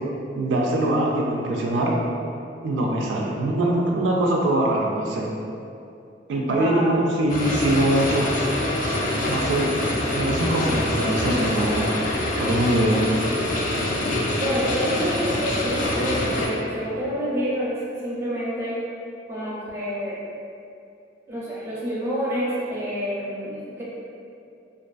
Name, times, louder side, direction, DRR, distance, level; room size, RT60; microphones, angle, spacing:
voice 1, 0.3-1.9 2.6-5.3 6.3-8.3 9.3-9.7 10.1-11.9 12.4-13.0, right 1 dB, 75° right, -2 dB, 0.3 m, -22 dB
voice 2, 6.5-7.0 14.4-18.8 19.3-20.2 21.3-23.8, equal, 15° right, -7 dB, 0.5 m, -28 dB
sound 1, 7.3-16.5, left 1 dB, 45° left, 0.3 m, -25 dB
2.5 x 2.4 x 2.3 m, 2.6 s
head